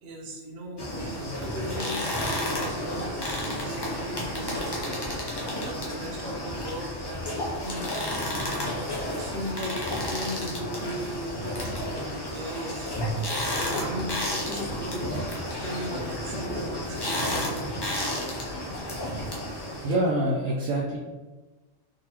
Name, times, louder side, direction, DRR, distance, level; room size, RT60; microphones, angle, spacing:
voice 1, 0.0-5.0 5.6-8.3 8.6-8.8 9.0-13.1 13.5-17.7, right 1 dB, 55° right, -1 dB, 0.8 m, -38 dB
sound 1, 0.8-19.9, left 1 dB, 35° left, 0.4 m, -31 dB
voice 2, 19.8-21.0, right 1 dB, 85° right, -5 dB, 1.0 m, -26 dB
3.9 x 2.7 x 2.9 m, 1.2 s
omnidirectional pair, 1.4 m